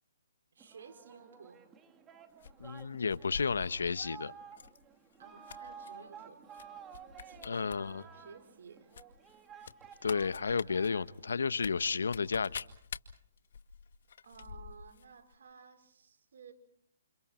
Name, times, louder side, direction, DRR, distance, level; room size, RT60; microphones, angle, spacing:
voice 1, 0.5-1.6 5.2-6.5 7.2-8.9 14.2-16.5, right 6 dB, 65° right, 7 dB, 4.8 m, -55 dB
Singing, 0.6-11.6, right 7 dB, 15° right, 2.5 m, -53 dB
sound 1, 2.4-4.0 4.5-4.8 5.1-5.9 6.5-6.7 6.9-7.8 8.1-8.2 8.9-15.1 15.3-15.4, left 7 dB, 65° left, 2.1 m, -46 dB
voice 2, 2.6-4.3 7.4-8.0 10.0-12.7, left 5 dB, 80° left, 16 dB, 1.1 m, -32 dB
29.5 x 29.5 x 4.5 m, 0.65 s
hypercardioid pair, 150°, 0 cm